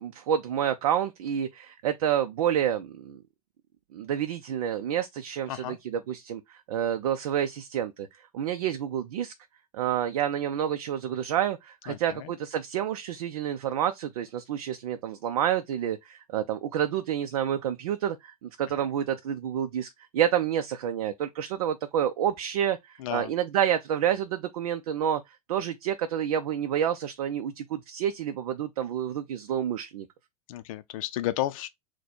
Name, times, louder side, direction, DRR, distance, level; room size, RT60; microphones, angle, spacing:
voice 1, 0.0-3.2 3.9-8.1 8.3-9.3 9.7-25.2 25.5-30.1, right 10 dB, 70° right, 0.5 m, -29 dB
voice 2, 11.9-12.3 23.0-23.3 30.5-31.7, left 14 dB, 65° left, 0.5 m, -32 dB
4.1 x 2.2 x 4.3 m
hypercardioid pair, 100°, 19 cm